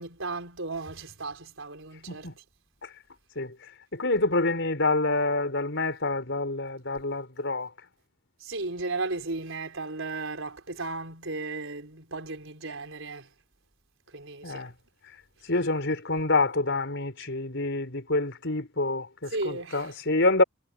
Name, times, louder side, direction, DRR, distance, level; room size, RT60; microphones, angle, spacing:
voice 1, 0.0-2.4 8.4-13.3 14.1-14.7 19.3-19.9, right 3 dB, 70° right, 4.6 m, -35 dB
voice 2, 3.9-7.7 14.4-14.7 15.5-20.4, left 2 dB, 60° left, 5.2 m, -27 dB
head